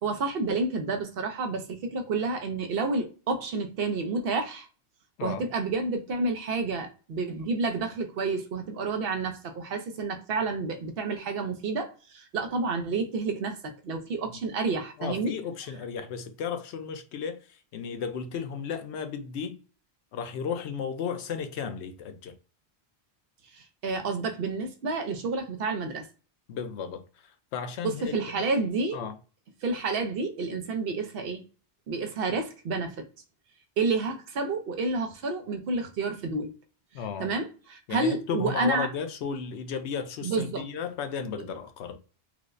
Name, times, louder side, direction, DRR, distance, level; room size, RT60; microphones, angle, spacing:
voice 1, 0.0-4.7 5.2-15.3 23.5-26.1 27.8-29.0 29.6-31.4 31.9-33.0 33.8-36.5 37.2-38.9 40.2-40.6, right 3 dB, 65° right, 0.8 m, -30 dB
voice 2, 15.0-19.6 20.1-22.3 26.5-28.2 28.9-29.2 36.9-37.3 37.9-42.0, left 6 dB, 85° left, 0.9 m, -34 dB
4.5 x 2.1 x 2.5 m
omnidirectional pair, 1.1 m